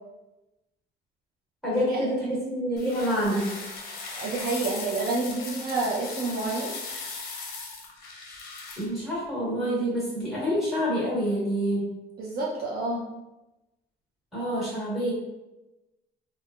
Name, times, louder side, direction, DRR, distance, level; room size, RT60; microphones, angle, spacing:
voice 1, 1.6-3.5 8.8-11.9 14.3-15.1, equal, ahead, -8 dB, 1.4 m, -27 dB
sound 1, 2.8-8.9, left 4 dB, 50° left, 0.6 m, -38 dB
voice 2, 4.1-6.7 12.2-13.0, right 3 dB, 55° right, -4 dB, 0.5 m, -29 dB
3.4 x 2.2 x 2.4 m, 1.0 s
cardioid pair, 155°, 20 cm